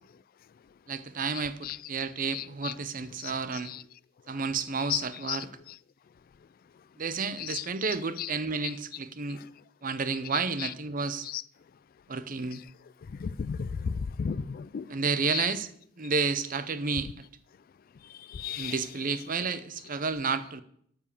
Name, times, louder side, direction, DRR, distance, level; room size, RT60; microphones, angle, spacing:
voice 1, 0.9-3.7 4.3-5.5 7.0-9.4 9.8-11.3 12.1-12.6 14.9-15.7 16.0-17.2 18.6-20.6, right 4 dB, 45° right, 0.7 m, -31 dB
voice 2, 2.3-2.7 3.7-3.8 4.9-5.0 5.3-5.4 7.4-7.6 8.2-8.3 8.6-8.7 10.6-10.7 11.2-11.4 13.2-14.8 15.3-15.5 18.3-18.9, left 8 dB, 50° left, 0.3 m, -33 dB
12.0 x 5.4 x 6.8 m
head